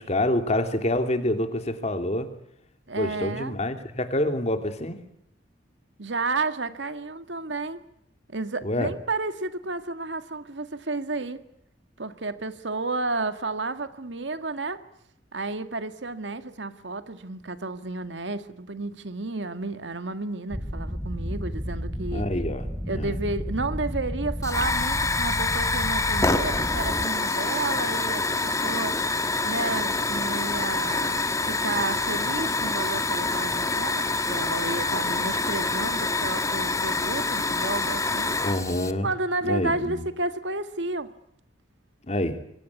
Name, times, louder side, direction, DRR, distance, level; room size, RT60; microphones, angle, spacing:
voice 1, 0.0-2.3 3.0-5.0 8.6-8.9 22.1-22.7 22.9-23.2 38.4-39.1 39.4-40.0 42.1-42.4, left 1 dB, 40° left, 2.9 m, -27 dB
voice 2, 2.9-3.5 6.0-7.8 8.3-11.4 12.0-14.8 15.3-22.3 22.9-29.0 29.4-38.4 39.0-41.1, right 3 dB, 80° right, 1.8 m, -31 dB
sound 1, 20.5-27.1, equal, 5° right, 3.1 m, -32 dB
Hiss / Fire, 24.4-38.9, left 3 dB, 20° left, 1.4 m, -26 dB
27.0 x 23.5 x 8.4 m
head